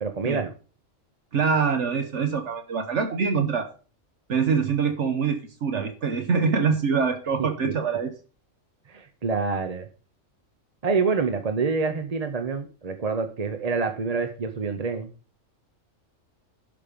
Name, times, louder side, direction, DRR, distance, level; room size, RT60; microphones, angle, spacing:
voice 1, 0.0-0.5 7.6-7.7 8.9-9.9 10.8-15.1, right 4 dB, 35° right, 7 dB, 0.8 m, -27 dB
voice 2, 1.3-3.7 4.3-8.1, right 5 dB, 65° right, 8 dB, 1.3 m, -24 dB
11.5 x 5.3 x 5.1 m, 0.37 s
omnidirectional pair, 1.4 m